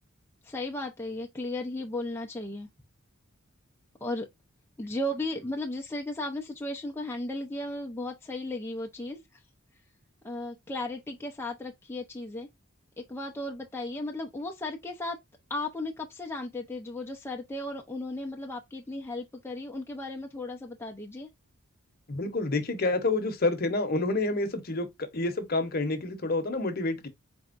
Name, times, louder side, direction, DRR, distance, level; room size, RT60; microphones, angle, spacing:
voice 1, 0.4-2.7 4.0-4.3 4.8-9.4 10.2-12.5 13.0-15.2 15.5-21.3, left 2 dB, 10° left, 0.5 m, -35 dB
voice 2, 22.1-27.1, left 2 dB, 45° left, 0.9 m, -28 dB
4.3 x 3.4 x 2.4 m
head